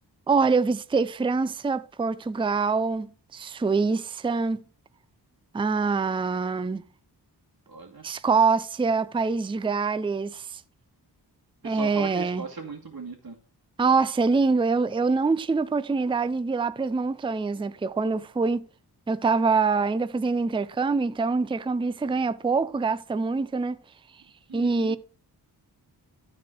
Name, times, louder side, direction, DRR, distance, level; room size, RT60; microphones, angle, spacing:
voice 1, 0.3-4.6 5.5-6.8 8.0-10.6 11.6-12.5 13.8-18.7 19.1-23.8 24.5-25.0, right 4 dB, 15° right, 0.4 m, -25 dB
voice 2, 7.7-8.0 11.6-13.4 24.5-25.0, right 3 dB, 55° right, 2.1 m, -37 dB
13.0 x 4.4 x 6.1 m
wide cardioid pair, 80°, 41 cm